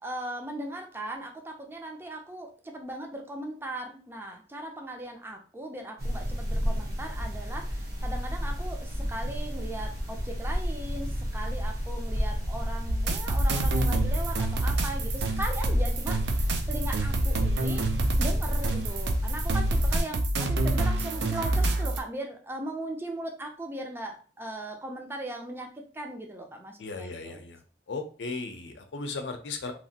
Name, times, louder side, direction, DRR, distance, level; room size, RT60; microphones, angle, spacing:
voice 1, 0.0-17.9 18.2-27.4, right 1 dB, 15° right, 2 dB, 0.5 m, -38 dB
sound 1, 6.0-20.0, equal, 60° right, 0.9 m, -30 dB
sound 2, 12.9-22.0, right 2 dB, 80° right, 0.4 m, -28 dB
voice 2, 26.8-27.6 27.9-29.7, left 3 dB, 85° left, 6 dB, 0.5 m, -36 dB
2.9 x 2.5 x 2.7 m, 0.38 s
head